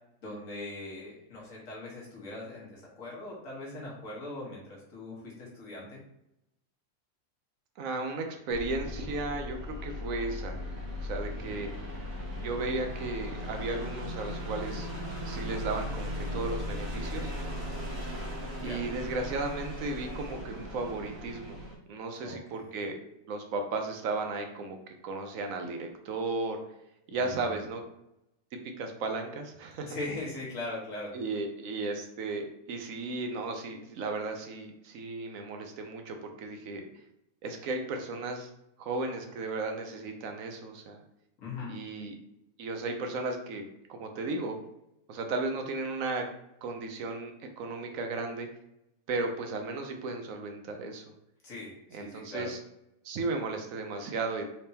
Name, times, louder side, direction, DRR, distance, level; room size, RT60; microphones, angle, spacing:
voice 1, 0.2-6.0 11.4-11.6 18.6-18.8 22.2-22.9 27.1-27.6 29.9-31.2 41.4-41.7 51.4-52.5, left 2 dB, 60° left, -4 dB, 1.7 m, -41 dB
voice 2, 7.8-10.6 11.0-11.7 12.3-14.9 15.2-17.3 18.6-21.6 21.9-23.0 23.3-24.8 25.0-26.6 27.1-27.8 28.8-30.0 31.1-36.9 37.4-38.5 38.8-41.0 41.7-42.2 42.6-44.6 45.1-46.2 46.6-48.5 49.1-51.0 51.9-52.6 53.0-54.4, right 3 dB, 70° right, 4 dB, 1.0 m, -35 dB
sound 1, 8.5-21.7, left 1 dB, 50° right, 1.5 m, -37 dB
4.4 x 3.4 x 2.8 m, 0.83 s
omnidirectional pair, 1.5 m